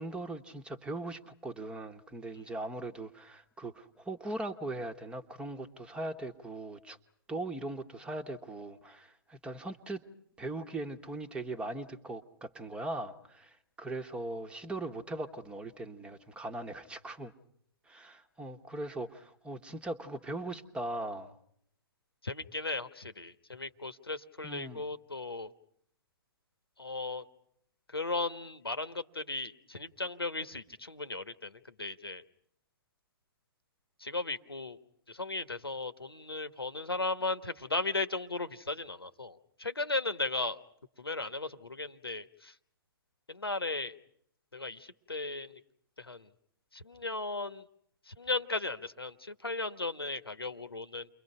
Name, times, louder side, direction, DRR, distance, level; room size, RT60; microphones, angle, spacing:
voice 1, 0.0-7.0 7.3-10.0 10.4-17.3 17.9-21.4 24.4-24.8, right 2 dB, 10° right, 6 dB, 1.3 m, -40 dB
voice 2, 22.2-25.5 26.8-27.2 27.9-32.2 34.0-34.8 35.1-40.6 41.0-42.5 43.3-43.9 44.5-45.6 46.0-46.3 46.7-47.6 48.1-51.1, left 3 dB, 85° left, 11 dB, 1.4 m, -36 dB
30.0 x 23.0 x 5.6 m, 0.71 s
figure-of-eight pair, 120°, 12 cm